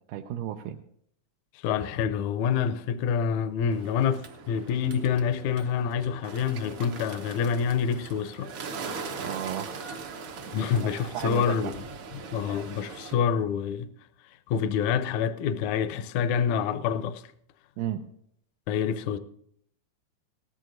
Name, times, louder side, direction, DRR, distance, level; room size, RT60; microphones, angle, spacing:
voice 1, 0.1-0.8 9.2-9.7 10.8-11.7 17.8-18.0, right 11 dB, 85° right, 2.2 m, -33 dB
voice 2, 1.6-8.5 10.5-11.7 12.3-13.9 14.5-17.2 18.7-19.2, left 7 dB, 75° left, 1.9 m, -27 dB
Bird, 3.7-13.1, right 5 dB, 65° right, 1.2 m, -40 dB
18.5 x 14.0 x 2.6 m
omnidirectional pair, 3.6 m